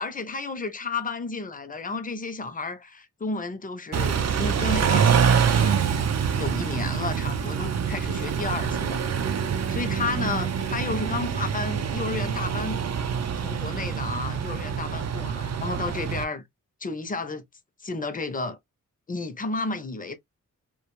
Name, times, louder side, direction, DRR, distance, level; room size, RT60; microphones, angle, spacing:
voice 1, 0.0-5.9 6.3-9.1 9.7-12.8 13.4-16.5 16.8-17.4 17.8-18.6 19.1-20.2, left 3 dB, 25° left, 0.5 m, -32 dB
Car / Idling / Accelerating revving vroom, 3.9-16.2, right 7 dB, 50° right, 0.4 m, -25 dB
2.3 x 2.2 x 3.0 m
wide cardioid pair, 90°, 33 cm